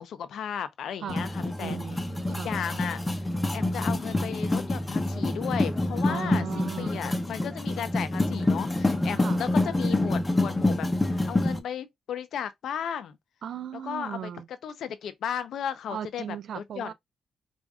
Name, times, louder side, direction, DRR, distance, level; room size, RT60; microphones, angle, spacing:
voice 1, 0.0-1.8 2.3-3.0 3.5-13.2 13.8-14.3 14.6-16.2 16.5-16.9, left 8 dB, 80° left, 0.6 m, -35 dB
sound 1, 1.1-11.6, left 2 dB, 15° left, 0.7 m, -27 dB
voice 2, 1.6-2.6 6.0-7.2 9.1-9.4 13.4-14.5 15.9-16.9, right 9 dB, 75° right, 0.4 m, -37 dB
4.9 x 2.6 x 2.3 m
cardioid pair, 100°, 0 cm